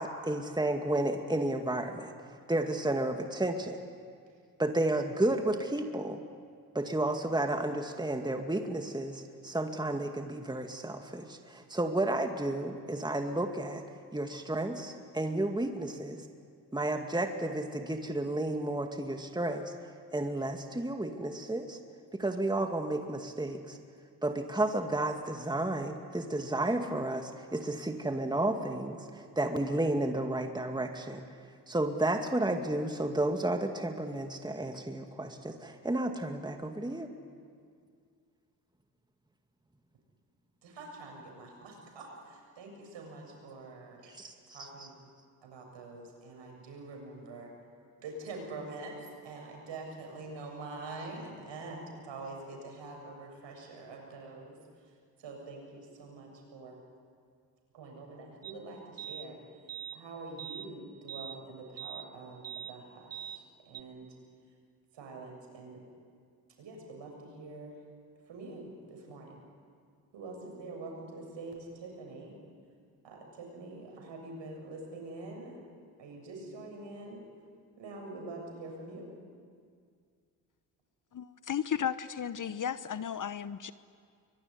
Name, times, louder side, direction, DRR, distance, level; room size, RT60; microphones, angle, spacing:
voice 1, 0.0-2.1 2.5-3.8 4.6-6.2 6.7-13.8 14.1-16.2 16.7-19.7 20.1-21.8 22.1-23.8 24.2-31.2 31.7-37.1 44.1-44.6, right 1 dB, 10° right, 5 dB, 2.2 m, -32 dB
voice 2, 40.6-44.1 44.5-45.0 45.4-47.5 48.0-56.8 57.7-59.4 59.9-64.2 64.9-65.8 66.6-67.8 68.3-69.4 70.1-72.4 73.0-75.6 76.0-77.2 77.8-79.1, right 2 dB, 65° right, 1 dB, 7.4 m, -45 dB
sound 1, 58.4-58.5 59.0-59.3 59.7-60.0 60.4-60.7 61.1-61.4 61.8-62.1 62.4-62.7 63.1-63.4 63.7-63.8, right 9 dB, 30° right, 1.4 m, -42 dB
voice 3, 81.1-83.7, left 8 dB, 40° left, 15 dB, 1.0 m, -34 dB
24.5 x 22.5 x 9.9 m, 2.2 s
hypercardioid pair, 50°, 47 cm